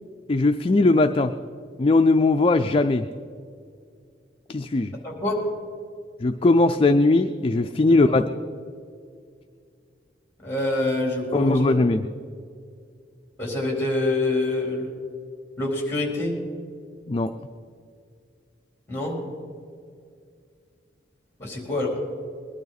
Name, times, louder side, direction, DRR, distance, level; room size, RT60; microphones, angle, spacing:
voice 1, 0.3-1.3 1.8-3.1 4.5-4.9 6.2-8.2 11.3-12.0 17.1-17.3, left 2 dB, 30° left, 7 dB, 0.4 m, -19 dB
voice 2, 5.0-5.4 7.9-8.3 10.4-11.8 13.4-14.9 15.6-16.3 18.9-19.2 21.4-22.0, left 2 dB, 15° left, -1 dB, 3.6 m, -26 dB
21.0 x 12.0 x 4.1 m, 2.2 s
head